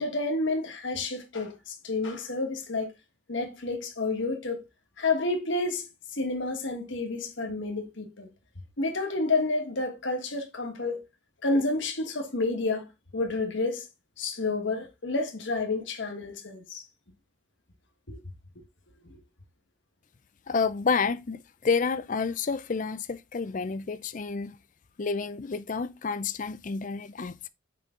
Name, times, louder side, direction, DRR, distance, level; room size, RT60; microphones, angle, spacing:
voice 1, 0.0-2.9 3.3-4.6 5.0-8.3 8.8-11.0 11.4-12.9 13.1-13.9 14.2-16.8 18.1-18.2 19.1-19.2, left 3 dB, 60° left, 1.6 m, -30 dB
voice 2, 20.5-24.6 25.0-27.5, left 5 dB, 40° left, 0.4 m, -29 dB
6.6 x 5.1 x 3.7 m
head